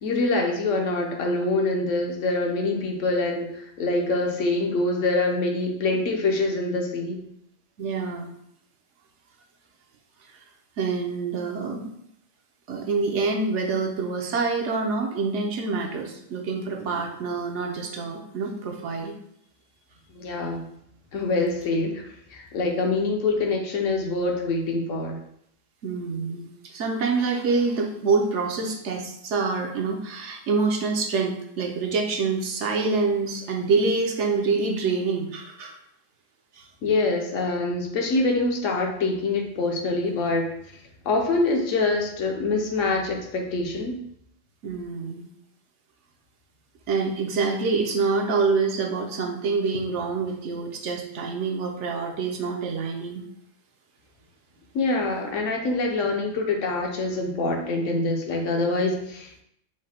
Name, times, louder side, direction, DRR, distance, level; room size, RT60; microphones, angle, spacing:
voice 1, 0.0-7.2 20.1-20.6 21.1-25.2 36.8-40.5 41.0-44.0 54.7-59.3, left 2 dB, 70° left, 2 dB, 1.1 m, -25 dB
voice 2, 7.8-8.3 10.8-11.9 12.7-19.1 25.8-35.8 36.5-36.7 44.6-45.3 46.9-53.2, right 4 dB, 70° right, 2 dB, 0.9 m, -26 dB
4.8 x 2.1 x 4.2 m, 0.73 s
omnidirectional pair, 1.3 m